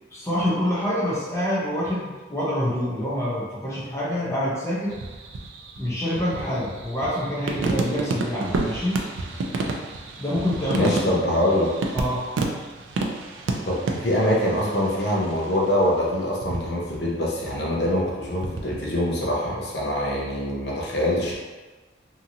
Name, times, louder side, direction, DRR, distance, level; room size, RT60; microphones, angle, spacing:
voice 1, 0.1-4.9 5.8-9.0 10.2-11.2 11.9-12.2, equal, 15° left, -8 dB, 0.6 m, -26 dB
sound 1, 4.9-15.7 16.4-17.1 17.3-18.9, right 3 dB, 80° right, 0.4 m, -31 dB
voice 2, 10.7-11.7 13.6-21.3, left 1 dB, 60° left, -4 dB, 0.7 m, -24 dB
2.8 x 2.5 x 2.7 m, 1.2 s
head